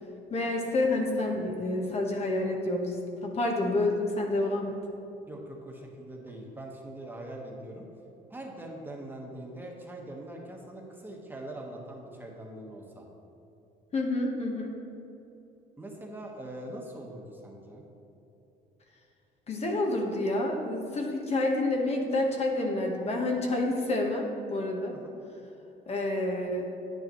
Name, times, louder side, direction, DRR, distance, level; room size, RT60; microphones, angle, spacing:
voice 1, 0.3-3.0 3.2-4.8 13.9-14.7 19.5-24.9 25.9-26.7, left 2 dB, 40° left, 1 dB, 1.2 m, -28 dB
voice 2, 5.3-7.8 8.3-13.1 15.8-17.8 24.9-25.1, right 1 dB, 10° right, -1 dB, 1.3 m, -42 dB
9.5 x 9.4 x 3.1 m, 2.9 s
cardioid pair, 110°, 17 cm